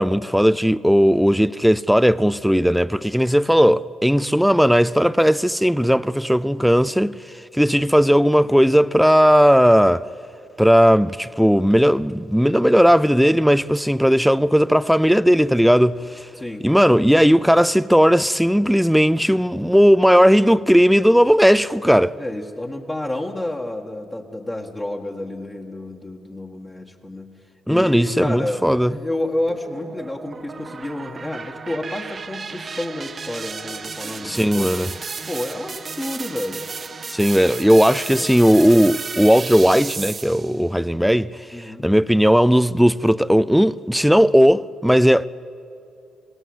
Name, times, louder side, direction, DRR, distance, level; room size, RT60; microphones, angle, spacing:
voice 1, 0.0-7.2 7.5-10.1 10.6-16.3 16.6-22.2 27.7-28.9 34.2-34.9 37.1-41.4 41.8-45.3, equal, ahead, 0.5 m, -16 dB
voice 2, 16.4-16.7 22.2-27.3 27.7-34.8 35.3-36.6 38.1-38.4 41.5-41.9, left 1 dB, 20° left, 1.8 m, -30 dB
sound 1, 29.5-40.6, right 5 dB, 40° right, 0.9 m, -33 dB
27.0 x 18.0 x 8.1 m
cardioid pair, 90°, 0 cm